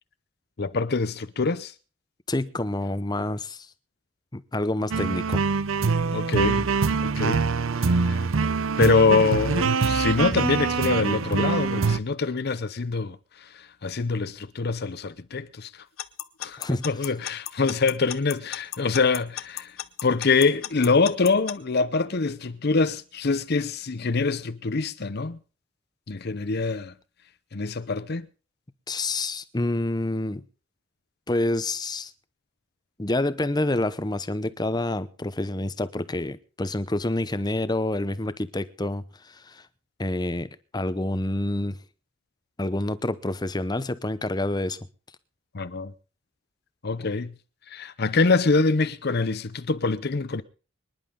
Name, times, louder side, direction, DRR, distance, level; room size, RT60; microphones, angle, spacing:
voice 1, 0.6-1.7 6.1-6.7 7.0-7.5 7.8-8.3 8.8-15.7 16.4-19.7 20.0-25.4 26.1-26.9 27.5-28.3 45.5-45.9 46.8-47.3 47.7-50.4, left 4 dB, 50° left, 0.7 m, -25 dB
voice 2, 2.3-3.7 4.3-5.4 16.6-16.8 28.9-30.4 31.3-32.1 33.0-39.7 40.0-41.8 42.6-44.8, left 2 dB, 20° left, 0.8 m, -28 dB
sound 1, 4.9-12.0, right 4 dB, 80° right, 0.6 m, -24 dB
Alarm / Clock, 16.0-21.5, left 12 dB, 80° left, 0.9 m, -33 dB
25.0 x 10.5 x 3.7 m
head